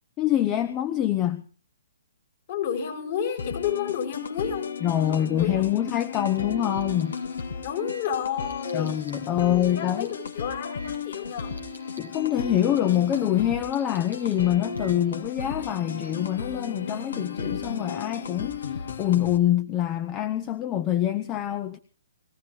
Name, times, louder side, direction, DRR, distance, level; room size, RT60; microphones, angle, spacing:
voice 1, 0.2-1.4 4.8-7.2 8.7-10.1 12.0-21.8, left 11 dB, 20° left, 10 dB, 0.9 m, -25 dB
voice 2, 2.5-5.7 7.6-8.9 9.4-11.6, left 8 dB, 45° left, 2 dB, 6.2 m, -31 dB
sound 1, 3.4-19.4, left 5 dB, 60° left, 1.8 m, -35 dB
sound 2, 4.9-5.1 5.4-5.5 6.1-12.1 12.4-13.2 13.7-15.2 15.6-16.4, right 1 dB, 85° left, 6.8 m, -53 dB
21.0 x 16.5 x 3.9 m, 0.39 s
figure-of-eight pair, 125°, 0 cm